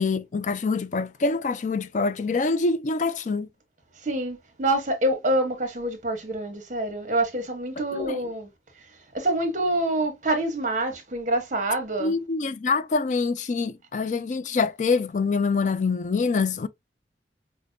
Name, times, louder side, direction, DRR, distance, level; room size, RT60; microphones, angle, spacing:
voice 1, 0.0-3.5 7.9-8.2 12.0-16.7, left 4 dB, 45° left, 0.4 m, -25 dB
voice 2, 4.0-8.5 9.1-12.1, right 1 dB, 45° right, 1.1 m, -26 dB
5.0 x 2.1 x 2.6 m
head